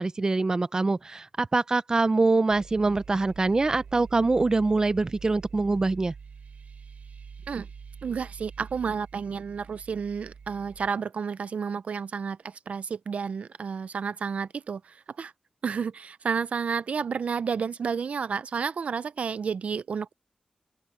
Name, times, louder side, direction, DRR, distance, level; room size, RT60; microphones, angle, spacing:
voice 1, 0.0-6.1, right 3 dB, 30° right, 0.6 m, -24 dB
sound 1, 2.5-10.9, right 6 dB, 90° right, 2.8 m, -45 dB
voice 2, 8.0-15.3 15.6-20.1, right 6 dB, 65° right, 0.4 m, -31 dB
open air
wide cardioid pair, 150°, 2 cm